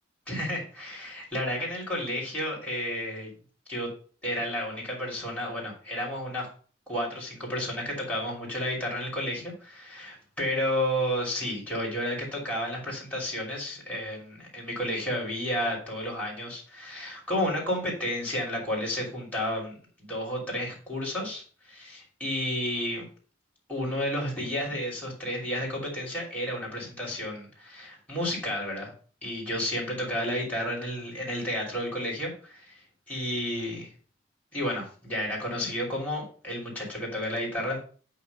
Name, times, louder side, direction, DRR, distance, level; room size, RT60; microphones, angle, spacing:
voice 1, 0.3-3.3 3.7-3.9 4.2-6.5 6.9-23.1 23.7-28.9 29.2-32.8 33.1-33.9 34.5-37.8, equal, 10° left, -4 dB, 2.9 m, -31 dB
8.4 x 2.9 x 5.2 m, 0.41 s
head